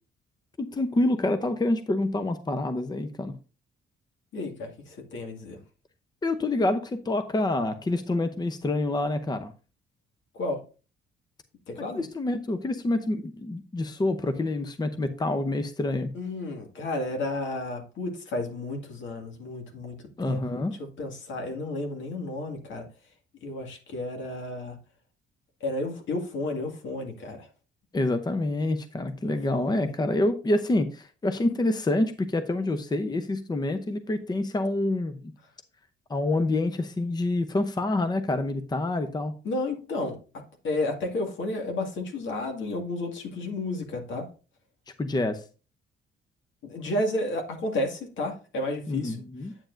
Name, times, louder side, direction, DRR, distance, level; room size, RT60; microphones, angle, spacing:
voice 1, 0.6-3.3 6.2-9.5 11.8-16.1 20.2-20.8 27.9-35.2 36.1-39.3 45.0-45.4 48.9-49.5, left 2 dB, 20° left, 9 dB, 0.8 m, -27 dB
voice 2, 4.3-5.6 10.3-10.6 11.7-12.0 16.1-20.0 20.2-22.9 23.4-24.8 25.6-27.5 29.2-29.9 39.4-40.2 40.6-44.3 46.6-49.2, left 2 dB, 70° left, 3 dB, 2.1 m, -32 dB
9.0 x 7.0 x 2.6 m, 0.34 s
cardioid pair, 90°, 20 cm